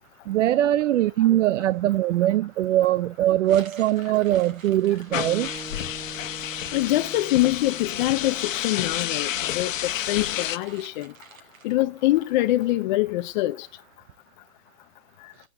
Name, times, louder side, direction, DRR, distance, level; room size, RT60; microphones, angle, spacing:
voice 1, 0.3-5.5, right 13 dB, 65° right, 0.7 m, -22 dB
sound 1, 3.4-12.7, right 5 dB, 80° right, 4.8 m, -49 dB
sound 2, 5.1-10.6, left 11 dB, 75° left, 1.1 m, -30 dB
sound 3, 5.1-9.5, right 3 dB, 5° right, 0.7 m, -44 dB
voice 2, 6.7-11.1 11.6-13.7, left 17 dB, 35° left, 0.6 m, -24 dB
14.5 x 7.8 x 8.6 m
hypercardioid pair, 145°, 40 cm